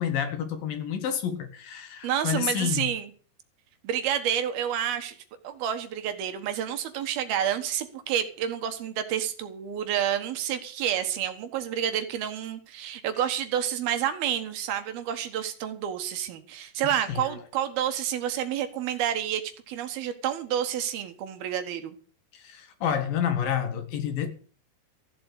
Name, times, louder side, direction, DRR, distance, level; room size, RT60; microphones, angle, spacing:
voice 1, 0.0-2.9 17.1-17.2 22.3-24.3, left 8 dB, 65° left, 3.2 m, -29 dB
voice 2, 2.0-3.1 3.8-5.2 5.4-22.0, right 10 dB, 70° right, 3.2 m, -29 dB
14.5 x 7.7 x 8.3 m
omnidirectional pair, 4.6 m